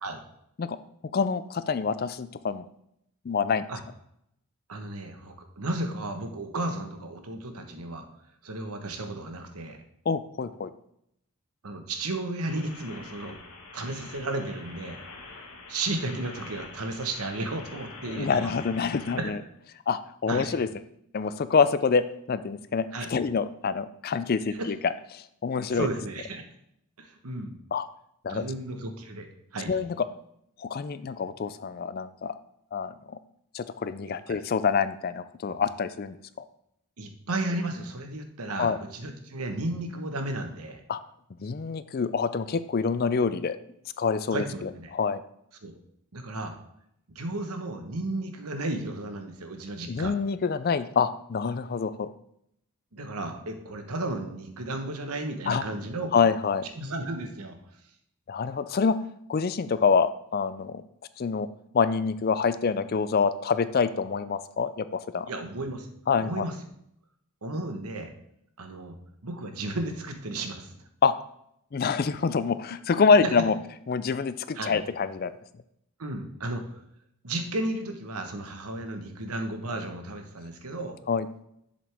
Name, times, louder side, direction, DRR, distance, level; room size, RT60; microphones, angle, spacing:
voice 1, 1.1-2.6 3.3-3.7 10.1-10.7 18.1-19.4 19.9-20.7 21.1-25.9 27.7-27.9 28.2-28.4 29.7-29.9 30.6-32.3 32.7-33.2 33.5-36.4 38.5-38.8 40.9-41.0 41.4-43.6 44.0-45.2 49.9-52.2 55.5-55.6 56.1-56.6 58.3-59.0 59.3-60.8 61.2-61.5 61.7-65.3 66.1-66.5 71.0-71.1 71.7-73.5 73.9-75.3 81.1-81.3, left 5 dB, 40° left, 13 dB, 0.4 m, -26 dB
voice 2, 4.7-8.0 8.4-9.8 11.6-13.4 13.7-15.0 15.7-18.5 19.2-19.3 20.3-20.5 22.9-23.1 24.5-24.7 25.7-26.4 27.0-27.5 28.3-29.3 29.5-29.7 34.3-34.4 35.5-35.6 37.0-40.8 44.3-44.9 45.6-45.7 46.1-46.5 47.1-50.1 52.9-56.1 56.7-57.6 65.3-65.9 66.2-66.5 67.4-68.1 68.6-68.9 69.2-70.7 73.2-73.3 74.5-74.8 76.0-76.7 77.2-81.0, right 2 dB, 85° right, 6 dB, 1.2 m, -33 dB
sound 1, 12.5-19.2, left 3 dB, 85° left, 1.7 m, -45 dB
7.6 x 7.1 x 3.5 m, 0.74 s
head